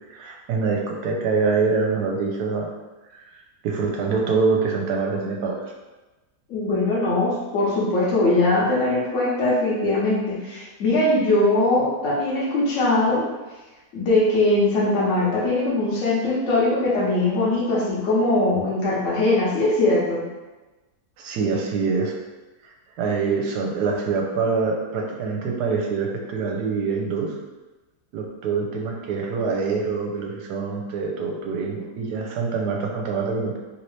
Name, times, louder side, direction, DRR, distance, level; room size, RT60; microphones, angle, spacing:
voice 1, 0.1-2.7 3.1-5.7 21.2-22.2 22.6-22.7 23.0-27.3 28.1-33.6, right 4 dB, 75° right, 0 dB, 1.1 m, -25 dB
voice 2, 6.5-13.2 13.9-20.2, left 2 dB, 55° left, -5 dB, 1.1 m, -21 dB
3.1 x 2.7 x 3.1 m, 1.1 s
omnidirectional pair, 1.8 m